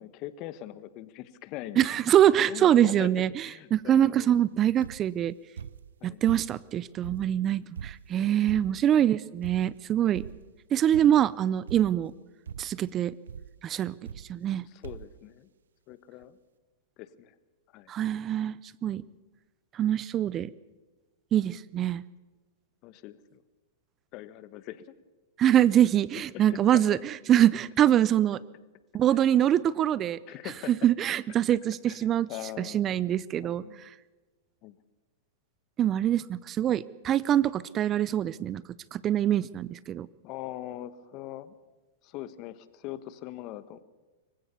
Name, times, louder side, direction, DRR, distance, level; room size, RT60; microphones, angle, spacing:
voice 1, 0.0-2.0 2.4-3.1 3.4-4.3 6.0-6.2 8.5-8.6 14.6-15.5 15.9-16.4 17.0-17.3 17.7-17.9 22.8-23.4 24.1-24.9 26.3-27.0 30.3-30.7 31.9-32.9 33.4-33.9 34.6-34.7 40.2-41.5 42.0-43.8, left 14 dB, 45° left, 15 dB, 1.2 m, -42 dB
voice 2, 1.8-5.3 6.0-10.2 10.7-12.1 12.6-13.1 13.6-14.0 14.3-14.7 17.9-18.6 18.8-19.0 19.7-20.5 21.3-22.0 25.4-28.4 28.9-30.2 30.7-32.3 32.6-33.6 35.8-38.6 38.9-40.1, right 11 dB, 30° right, 20 dB, 0.6 m, -24 dB
sound 1, 4.8-5.2 5.6-6.7 7.0-9.0 9.4-9.9 10.1-10.6 10.9-11.3 11.7-12.2 12.5-12.9 13.3-13.6 14.1-14.6 14.8-15.2 15.9-16.0 16.2-16.3, right 7 dB, 80° right, 0.6 m, -42 dB
25.5 x 15.5 x 7.0 m, 1.2 s
hypercardioid pair, 110°, 0 cm